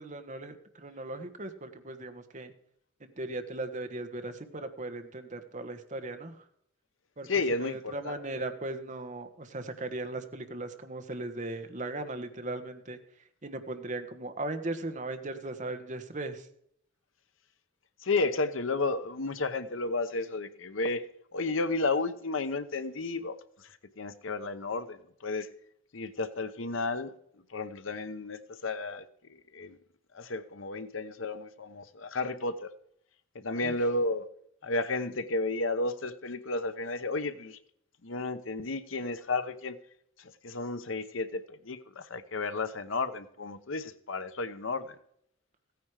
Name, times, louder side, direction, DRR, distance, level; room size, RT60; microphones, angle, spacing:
voice 1, 0.0-2.5 3.0-6.4 7.2-7.3 7.5-13.0 13.4-16.5 33.6-33.7, right 2 dB, 40° right, 7 dB, 1.3 m, -38 dB
voice 2, 7.3-8.2 18.0-21.0 21.3-23.4 24.0-25.5 25.9-27.1 27.5-29.8 30.1-32.7 33.3-34.3 34.6-37.6 38.0-39.8 40.4-44.9, left 3 dB, 85° left, 11 dB, 0.9 m, -32 dB
15.5 x 9.4 x 4.8 m, 0.70 s
head